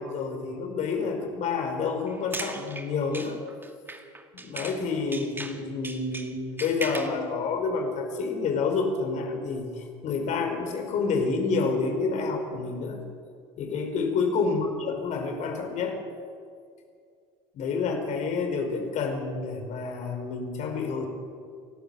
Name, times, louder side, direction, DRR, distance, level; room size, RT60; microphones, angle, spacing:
voice 1, 0.0-3.4 4.3-13.0 13.6-16.0 17.5-21.1, left 4 dB, 55° left, 4 dB, 5.0 m, -29 dB
sound 1, 2.1-4.8 5.1-7.2, right 2 dB, 15° right, 2.4 m, -38 dB
29.0 x 12.5 x 8.4 m, 2.2 s
supercardioid pair, 85°, 14 cm